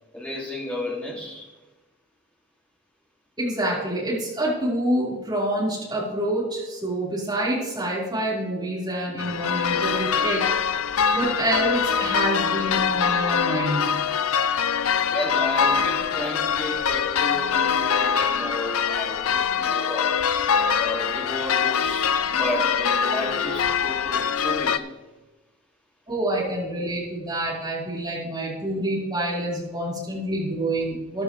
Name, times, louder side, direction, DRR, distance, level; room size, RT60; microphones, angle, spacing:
voice 1, 0.1-1.5 15.1-20.2 20.8-25.0, left 1 dB, 5° left, -3 dB, 2.4 m, -33 dB
voice 2, 3.4-10.4 11.1-13.9 26.1-31.2, right 1 dB, 20° right, -6 dB, 4.3 m, -27 dB
sound 1, 9.2-24.8, left 7 dB, 85° left, 0.5 m, -23 dB
14.0 x 11.5 x 3.2 m, 1.1 s
head